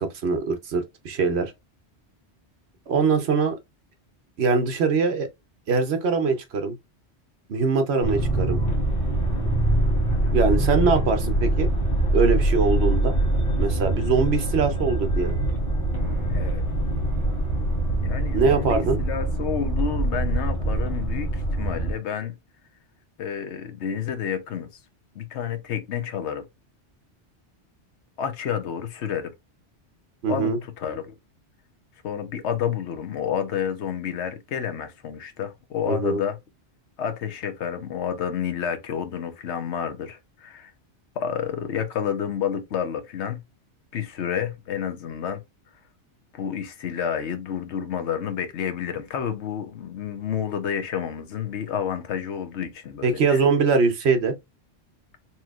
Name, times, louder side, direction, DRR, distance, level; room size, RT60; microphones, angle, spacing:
voice 1, 0.0-1.5 2.9-3.6 4.4-5.3 5.7-6.7 7.5-8.6 10.3-11.7 12.1-13.1 13.5-15.3 18.3-19.0 30.2-30.6 35.9-36.2 53.0-54.3, right 4 dB, 70° right, 1.1 m, -22 dB
sound 1, 8.0-21.9, right 1 dB, 55° left, 1.4 m, -24 dB
voice 2, 16.3-16.6 18.0-22.3 23.2-24.7 25.1-26.5 28.2-29.3 30.3-31.1 32.0-36.4 37.0-40.7 41.2-43.4 43.9-45.4 46.3-53.4, left 8 dB, 75° left, 1.1 m, -30 dB
4.2 x 3.0 x 2.4 m
omnidirectional pair, 1.2 m